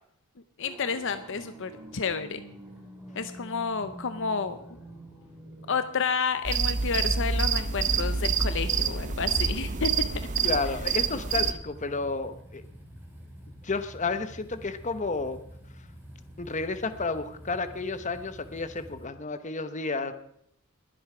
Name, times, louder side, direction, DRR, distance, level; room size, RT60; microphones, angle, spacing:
voice 1, 0.6-2.4 3.1-4.6 5.7-10.2 10.7-10.8, left 5 dB, 60° left, 10 dB, 0.7 m, -30 dB
sound 1, 0.6-19.1, equal, 10° right, 2.5 m, -47 dB
sound 2, 6.4-11.5, right 5 dB, 35° right, 0.7 m, -27 dB
voice 2, 10.4-12.6 13.6-15.4 16.4-20.1, left 3 dB, 35° left, 10 dB, 0.9 m, -31 dB
21.0 x 7.9 x 4.9 m, 0.71 s
head